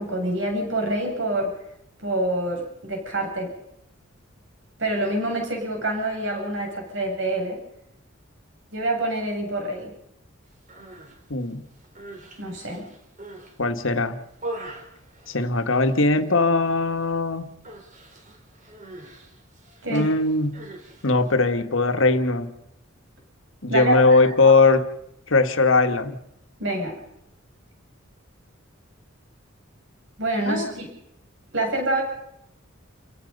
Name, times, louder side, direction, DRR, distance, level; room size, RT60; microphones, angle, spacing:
voice 1, 0.0-1.5 2.0-3.5 4.8-7.6 8.7-9.9 12.4-12.9 19.8-20.1 23.7-24.5 26.6-26.9 30.2-30.9 31.5-32.0, right 1 dB, 65° right, 2 dB, 7.9 m, -26 dB
Human voice, 10.6-11.2 11.7-13.6 14.0-16.0 16.2-16.7 16.9-17.2 17.6-21.3, right 1 dB, 40° right, 4.5 m, -42 dB
voice 2, 11.3-11.6 13.6-14.2 15.3-17.5 19.9-20.7 21.0-22.5 23.6-24.9 25.3-26.2 30.5-30.7, left 3 dB, 75° left, 8 dB, 1.8 m, -20 dB
30.0 x 17.5 x 5.5 m, 0.80 s
head